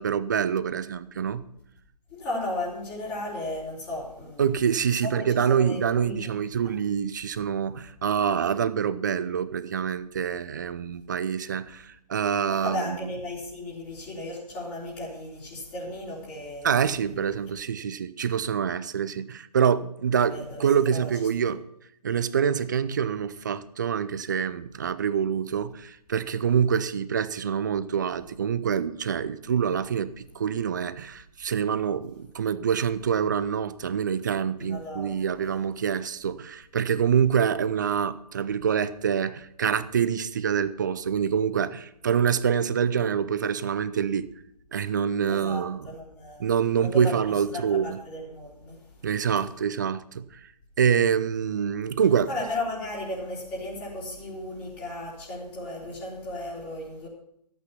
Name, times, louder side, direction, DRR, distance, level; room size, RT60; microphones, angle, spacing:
voice 1, 0.0-1.4 4.4-13.0 16.6-21.6 22.0-44.3 44.7-45.8 46.4-48.0 49.0-50.4 50.8-52.3, right 7 dB, 30° right, 0.5 m, -26 dB
voice 2, 2.1-4.5 5.0-5.1 5.3-6.4 6.6-6.7 12.5-16.7 20.3-21.1 34.6-35.5 45.3-46.5 46.8-49.1 52.3-57.1, left 1 dB, 20° left, 3.7 m, -35 dB
14.0 x 8.6 x 5.6 m
figure-of-eight pair, 145°, 21 cm